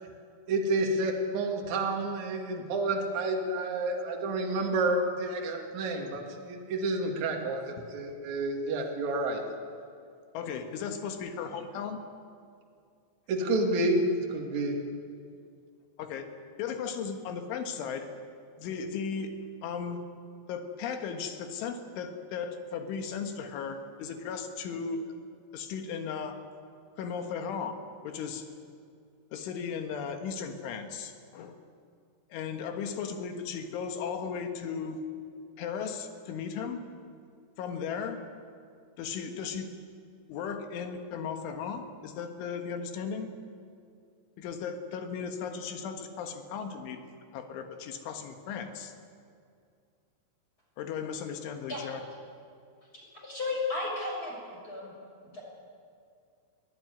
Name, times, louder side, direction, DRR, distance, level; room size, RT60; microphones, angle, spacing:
voice 1, 0.5-9.4 13.3-14.8, right 2 dB, 45° right, 1 dB, 2.8 m, -29 dB
voice 2, 10.3-12.0 16.0-16.3 16.6-18.1 18.6-20.0 20.5-25.1 25.5-26.4 27.0-27.8 28.0-28.5 29.3-31.6 32.3-35.0 35.6-36.8 37.6-38.3 39.0-39.7 40.3-43.4 44.4-47.0 47.3-48.9 50.8-52.0, left 6 dB, 70° left, 5 dB, 3.8 m, -36 dB
voice 3, 53.1-54.9 55.2-55.4, left 3 dB, 15° left, -3 dB, 6.4 m, -34 dB
22.0 x 17.0 x 9.8 m, 2.3 s
omnidirectional pair, 5.9 m